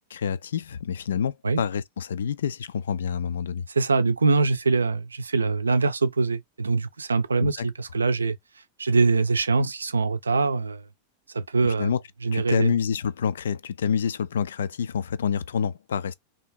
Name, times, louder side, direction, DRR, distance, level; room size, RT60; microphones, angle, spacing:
voice 1, 0.0-3.6 7.4-7.7 11.6-12.0 12.3-16.1, left 7 dB, 65° left, 0.3 m, -27 dB
voice 2, 3.7-8.4 8.8-10.8 11.3-11.9 12.2-12.7, right 4 dB, 75° right, 0.5 m, -23 dB
3.4 x 2.8 x 4.5 m
figure-of-eight pair, 90°, 0 cm